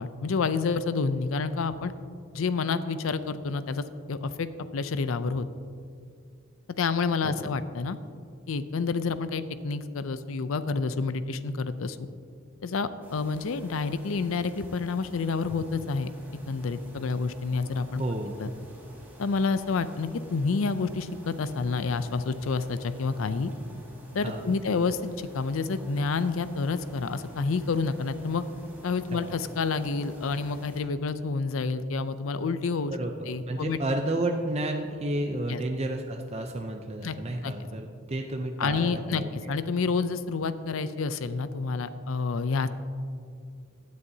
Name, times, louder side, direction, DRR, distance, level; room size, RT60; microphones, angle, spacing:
voice 1, 0.0-1.9 2.3-5.5 6.8-8.0 8.5-12.0 12.6-16.1 16.5-18.0 18.4-18.5 19.2-23.5 24.1-28.4 28.8-32.9 33.3-33.8 35.5-35.6 37.0-37.2 37.4-37.5 38.6-42.7, left 4 dB, 75° left, 13 dB, 0.5 m, -29 dB
sound 1, 13.0-30.8, equal, 10° right, 2.1 m, -50 dB
voice 2, 18.0-18.3 24.2-24.6 29.1-29.3 32.9-39.5, right 1 dB, 30° right, 3 dB, 0.5 m, -31 dB
16.0 x 9.6 x 2.8 m, 2.3 s
head